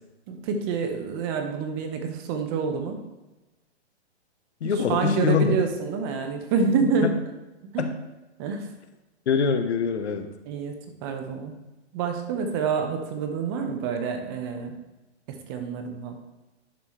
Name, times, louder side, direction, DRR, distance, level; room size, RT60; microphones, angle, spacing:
voice 1, 0.3-3.0 4.6-7.1 7.6-7.9 8.4-8.7 10.5-10.7 11.0-11.6 11.9-14.8 15.3-16.2, right 5 dB, 20° right, 5 dB, 0.8 m, -27 dB
voice 2, 4.6-5.6 7.0-7.1 7.8-7.9 9.3-10.3, left 6 dB, 75° left, 8 dB, 1.2 m, -24 dB
11.0 x 6.0 x 3.1 m, 1.1 s
hypercardioid pair, 155°, 34 cm